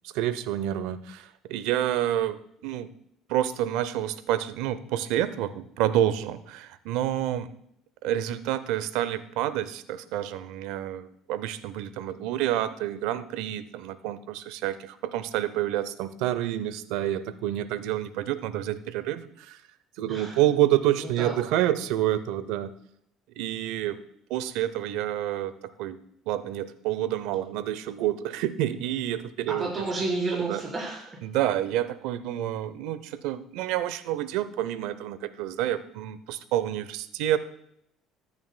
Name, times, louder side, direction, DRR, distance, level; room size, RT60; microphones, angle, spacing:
voice 1, 0.0-2.9 3.3-7.5 8.0-19.6 20.0-22.7 23.4-24.0 24.3-25.5 25.8-26.0 26.3-29.7 30.5-30.6 31.2-37.4, right 12 dB, 80° right, 15 dB, 0.6 m, -28 dB
voice 2, 20.1-20.4 20.9-21.3 29.5-31.0, right 3 dB, 35° right, -3 dB, 4.3 m, -31 dB
14.0 x 9.6 x 2.2 m, 0.72 s
supercardioid pair, 80°, 0 cm